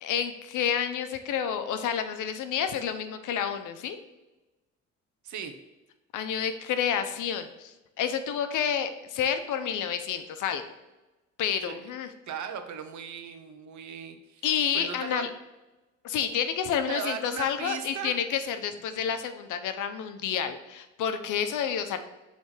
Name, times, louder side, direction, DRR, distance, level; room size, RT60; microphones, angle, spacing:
voice 1, 0.0-4.0 6.1-10.6 11.4-12.1 14.4-15.3 16.0-22.0, left 8 dB, 80° left, 9 dB, 0.8 m, -29 dB
voice 2, 5.2-5.6 11.6-11.8 12.3-14.5 14.7-15.2 16.9-18.1, right 7 dB, 70° right, 8 dB, 1.0 m, -37 dB
7.2 x 3.5 x 4.9 m, 1.1 s
cardioid pair, 90°, 30 cm